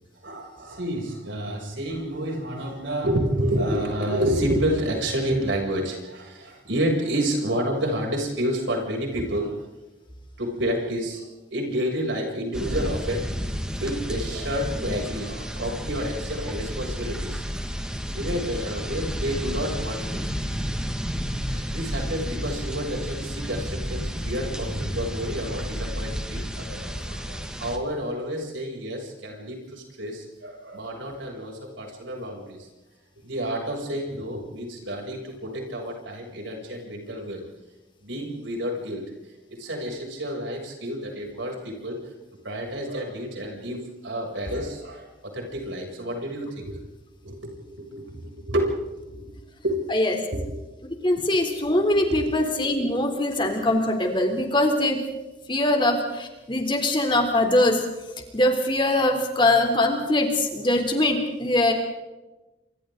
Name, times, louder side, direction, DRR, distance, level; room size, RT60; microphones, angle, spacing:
voice 1, 0.2-9.7 10.4-11.3 11.5-13.3 13.8-17.4 18.1-20.2 21.4-32.7 33.2-37.4 38.0-39.0 39.5-42.0 42.4-46.8 47.2-48.2 48.5-49.3 49.6-49.8 50.3-50.6 52.1-52.3 55.7-55.8, equal, 85° right, 0 dB, 7.2 m, -29 dB
sound 1, 12.5-27.8, equal, 5° right, 2.0 m, -31 dB
voice 2, 51.0-55.0 55.5-57.8 58.3-61.7, left 1 dB, 25° left, 4 dB, 3.4 m, -22 dB
27.5 x 26.0 x 3.9 m, 1.1 s
head